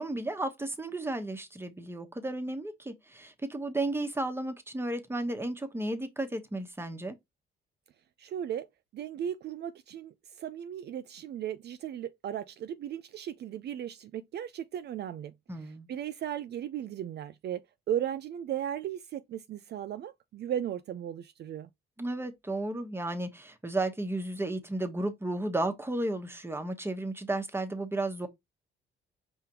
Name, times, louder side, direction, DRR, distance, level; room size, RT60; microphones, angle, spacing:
voice 1, 0.0-7.2 15.5-15.9 22.0-28.3, right 2 dB, 10° right, 1.1 m, -33 dB
voice 2, 8.2-8.7 8.9-21.7, right 10 dB, 60° right, 0.4 m, -36 dB
5.0 x 3.6 x 2.9 m
cardioid pair, 90°, 20 cm